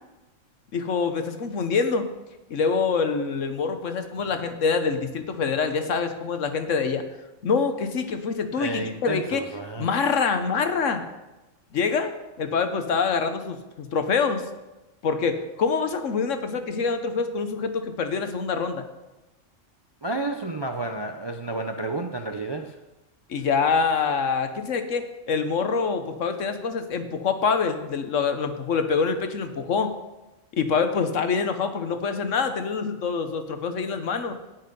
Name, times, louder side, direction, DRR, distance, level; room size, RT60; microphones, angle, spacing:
voice 1, 0.7-2.1 2.5-7.0 7.4-9.4 9.8-11.0 11.7-14.4 15.0-18.8 23.3-30.0 30.5-34.3, left 5 dB, 70° left, 8 dB, 1.3 m, -25 dB
voice 2, 8.5-9.9 20.0-22.8, right 2 dB, 35° right, 5 dB, 0.4 m, -31 dB
17.0 x 5.8 x 5.4 m, 1.0 s
omnidirectional pair, 1.4 m